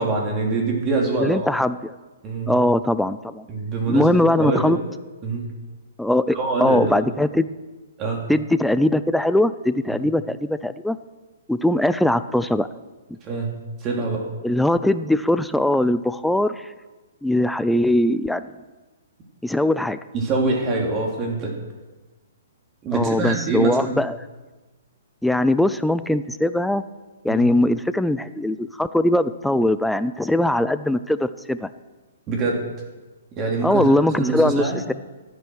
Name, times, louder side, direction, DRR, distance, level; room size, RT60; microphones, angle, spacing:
voice 1, 0.0-1.5 2.2-2.6 3.5-4.8 5.2-5.5 6.3-7.0 8.0-8.2 13.2-13.5 13.8-14.3 20.1-21.5 22.8-23.9 27.3-27.4 32.3-32.6 33.4-34.8, right 3 dB, 25° right, 0 dB, 3.2 m, -24 dB
voice 2, 1.1-2.0 2.5-3.4 3.9-4.8 6.0-7.5 8.3-11.0 11.5-12.7 14.4-16.7 17.2-18.5 19.4-20.0 22.9-24.2 25.2-26.8 27.2-31.7 33.6-34.9, left 1 dB, ahead, 13 dB, 0.5 m, -21 dB
13.5 x 9.3 x 6.4 m, 1.2 s
hypercardioid pair, 145°, 0 cm